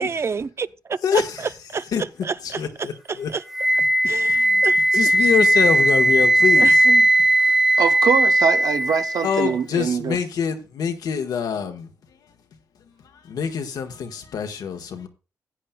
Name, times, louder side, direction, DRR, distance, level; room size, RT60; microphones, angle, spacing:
voice 1, 0.0-1.2 1.7-3.4 4.1-5.1 6.6-7.0 7.4-7.8, right 5 dB, 40° right, 0.4 m, -30 dB
voice 2, 1.0-1.4 1.9-2.0 2.4-3.3 4.0-4.7 4.9-6.8 9.2-11.9 13.1-15.1, left 7 dB, 75° left, 1.2 m, -25 dB
Wind instrument woodwind instrument, 3.5-9.5, right 1 dB, 5° right, 0.8 m, -17 dB
voice 3, 7.8-10.2, right 7 dB, 70° right, 0.8 m, -23 dB
16.0 x 8.7 x 2.2 m
supercardioid pair, 55°, 7 cm